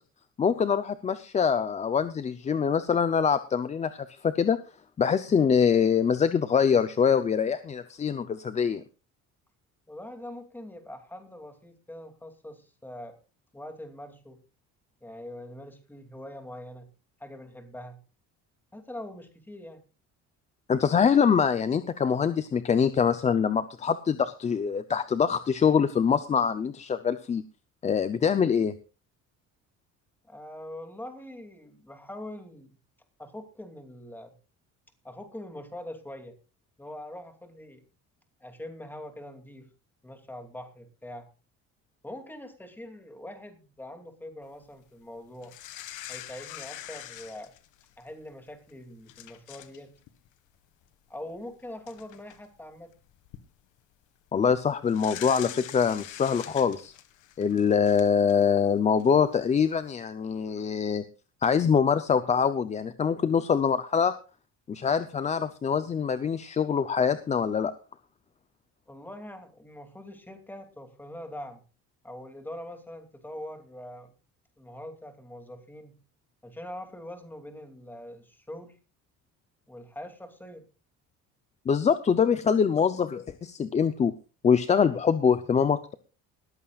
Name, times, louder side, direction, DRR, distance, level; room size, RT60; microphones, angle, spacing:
voice 1, 0.4-4.6 5.0-8.8 20.7-27.4 27.8-28.7 54.3-56.9 57.4-61.0 61.4-64.1 64.7-67.7 81.7-84.1 84.4-85.8, left 6 dB, 20° left, 11 dB, 0.6 m, -24 dB
voice 2, 9.9-13.1 13.5-14.4 15.0-16.9 17.2-18.0 18.7-19.8 30.2-32.8 33.2-34.3 35.0-36.4 36.8-37.8 38.4-39.7 40.0-41.3 42.0-45.5 46.1-47.5 48.0-49.9 51.1-52.9 55.5-55.6 68.9-71.6 72.0-74.1 74.6-76.0 76.4-78.8 79.7-80.7, left 1 dB, 5° left, 6 dB, 2.6 m, -43 dB
sound 1, 45.4-48.1 48.7-48.8 49.1-49.8 50.1-50.3 51.4-51.5 51.9-52.4 53.1-53.4 54.9-58.5 59.0-59.1, left 13 dB, 80° left, 1.8 m, -43 dB
20.0 x 14.5 x 2.4 m, 0.34 s
cardioid pair, 170°, 30 cm